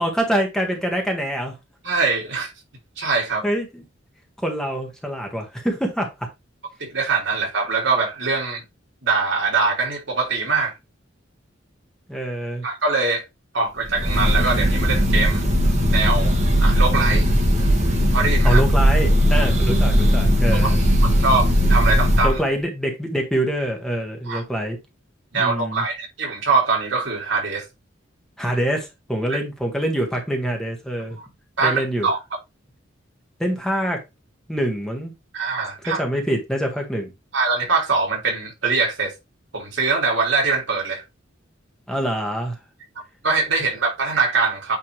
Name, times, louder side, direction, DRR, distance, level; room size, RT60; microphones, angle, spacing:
voice 1, 0.0-1.6 3.4-3.8 4.4-6.1 12.1-12.6 18.4-20.8 22.2-24.8 25.3-25.8 28.4-31.2 31.6-32.1 33.4-34.0 34.5-35.1 35.8-37.1 41.9-42.6, right 1 dB, 5° left, 1.5 m, -25 dB
voice 2, 1.8-2.5 3.0-3.4 6.8-8.6 9.0-10.7 12.6-13.2 13.5-15.4 15.9-16.3 16.6-17.3 18.1-18.6 20.6-20.7 21.2-22.4 24.3-24.4 25.3-27.7 29.3-29.4 31.6-32.2 35.3-36.0 37.3-39.1 39.5-41.0 43.2-44.8, right 4 dB, 70° right, 2.6 m, -22 dB
Breathing / Bird, 13.9-22.4, equal, 40° right, 1.8 m, -18 dB
8.9 x 3.3 x 3.3 m
head